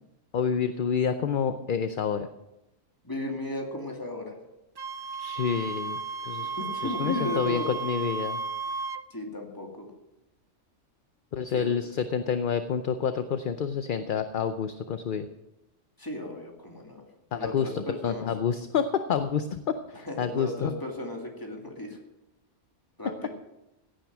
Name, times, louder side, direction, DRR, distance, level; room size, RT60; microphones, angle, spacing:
voice 1, 0.3-2.3 5.2-6.5 6.8-8.4 11.3-15.3 17.3-20.7, left 7 dB, 50° left, 10 dB, 0.7 m, -28 dB
voice 2, 3.0-4.3 6.6-7.8 9.1-9.9 11.5-11.8 16.0-17.0 17.3-18.3 20.1-22.0 23.0-23.3, left 1 dB, 15° left, 0 dB, 2.5 m, -35 dB
Wind instrument woodwind instrument, 4.8-9.0, right 4 dB, 35° right, 0.3 m, -34 dB
16.5 x 9.1 x 6.1 m, 0.94 s
omnidirectional pair, 1.2 m